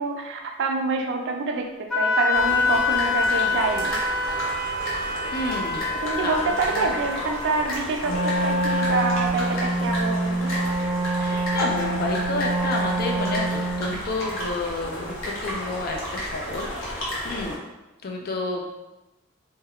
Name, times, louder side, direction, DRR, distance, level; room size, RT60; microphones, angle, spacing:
voice 1, 0.0-4.0 5.9-10.5, right 3 dB, 55° right, 3 dB, 0.3 m, -27 dB
Wind instrument woodwind instrument, 1.9-7.7, left 4 dB, ahead, 0.9 m, -26 dB
sound 1, 2.3-17.6, left 1 dB, 80° left, 0.8 m, -33 dB
voice 2, 5.3-5.8 6.2-6.9 11.2-17.5 18.0-18.7, left 2 dB, 45° left, 1 dB, 0.4 m, -30 dB
Wind instrument woodwind instrument 2, 8.0-14.0, right 2 dB, 25° right, 0.7 m, -25 dB
2.2 x 2.1 x 3.5 m, 1.0 s
head